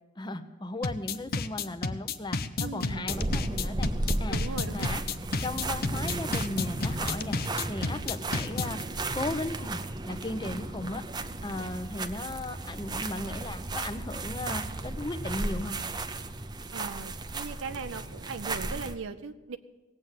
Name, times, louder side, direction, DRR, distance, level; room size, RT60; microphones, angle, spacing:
voice 1, 0.2-3.9 4.2-4.4 4.7-5.0 5.4-8.8 9.1-9.8 10.1-11.0 11.4-15.8, left 2 dB, 25° left, 9 dB, 0.8 m, -36 dB
sound 1, 0.8-8.8, left 4 dB, 50° left, 0.7 m, -31 dB
voice 2, 2.6-3.1 4.3-4.9 7.8-8.0 11.5-11.7 16.7-19.6, right 5 dB, 85° right, 9 dB, 0.6 m, -39 dB
sound 2, 3.1-19.0, right 2 dB, 20° right, 0.6 m, -34 dB
18.0 x 8.0 x 7.5 m, 1.1 s
head